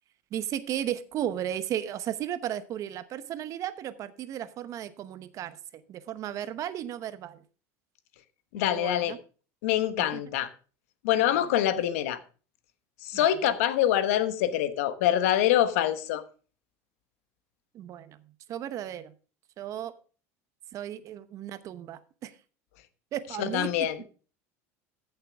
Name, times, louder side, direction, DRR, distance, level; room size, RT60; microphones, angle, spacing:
voice 1, 0.3-7.4 8.5-9.2 10.0-10.2 11.3-11.9 13.1-13.6 17.7-19.1 19.6-19.9 20.7-22.4 23.1-23.9, right 11 dB, 45° right, 0.9 m, -35 dB
voice 2, 8.5-9.1 9.6-10.5 11.0-12.2 13.0-16.2 23.4-24.0, left 11 dB, 80° left, 1.1 m, -25 dB
14.5 x 6.7 x 3.5 m
supercardioid pair, 120°, 8 cm